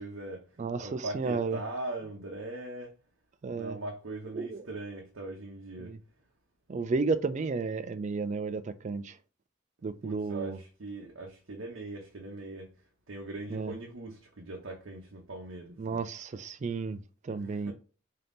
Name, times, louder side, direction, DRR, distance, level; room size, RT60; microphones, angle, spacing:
voice 1, 0.0-0.5 0.8-2.9 3.5-6.0 10.0-12.7 13.1-16.1 17.3-17.7, right 2 dB, 75° right, 0.8 m, -40 dB
voice 2, 0.6-1.6 3.4-3.8 4.3-4.6 5.8-6.0 6.7-9.1 9.8-10.6 13.5-13.7 15.8-17.0 17.2-17.7, right 4 dB, 35° right, 0.3 m, -32 dB
3.8 x 2.8 x 3.5 m
head